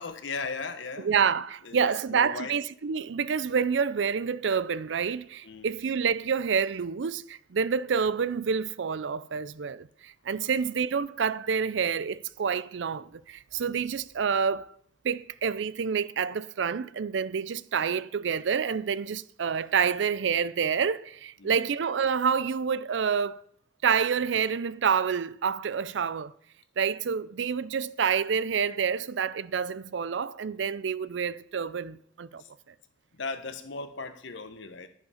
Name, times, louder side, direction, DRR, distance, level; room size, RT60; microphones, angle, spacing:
voice 1, 0.0-1.1 1.6-2.6 5.4-5.7 10.4-10.5 21.4-21.6 32.4-32.5 33.1-34.9, left 4 dB, 80° left, 1.1 m, -37 dB
voice 2, 1.0-14.7 15.0-23.4 23.8-26.3 26.8-32.4, right 6 dB, 75° right, 0.5 m, -28 dB
10.5 x 9.3 x 5.7 m
head